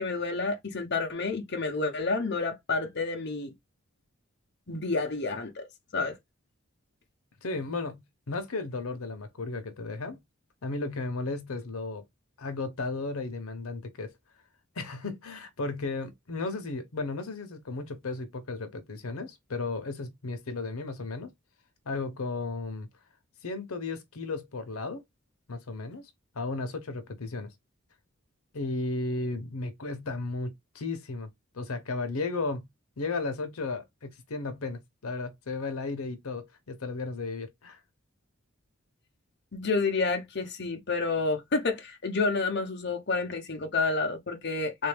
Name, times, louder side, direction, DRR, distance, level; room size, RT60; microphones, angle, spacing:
voice 1, 0.0-3.5 4.7-5.7 5.9-6.2 39.5-44.9, left 3 dB, 50° left, 0.8 m, -29 dB
voice 2, 7.4-10.2 10.6-12.0 12.4-14.1 14.8-21.3 21.8-22.9 23.4-25.0 25.5-27.5 28.5-31.3 31.5-32.7 33.0-37.8, left 3 dB, 90° left, 0.8 m, -34 dB
3.4 x 2.6 x 3.3 m
head